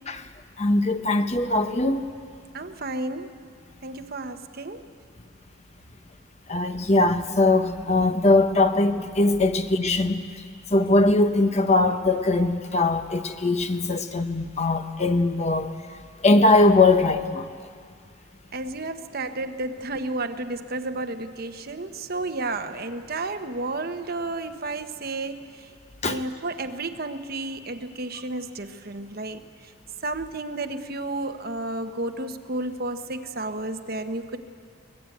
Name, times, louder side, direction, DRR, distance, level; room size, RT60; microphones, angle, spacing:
voice 1, 0.6-2.0 6.5-10.2 10.7-15.7 16.2-17.5 26.0-26.2, left 2 dB, 30° left, 1.0 m, -21 dB
voice 2, 2.5-3.3 3.8-4.8 18.5-25.7 26.1-29.4 30.0-34.4, right 2 dB, 45° right, 1.1 m, -32 dB
24.5 x 20.5 x 9.3 m
head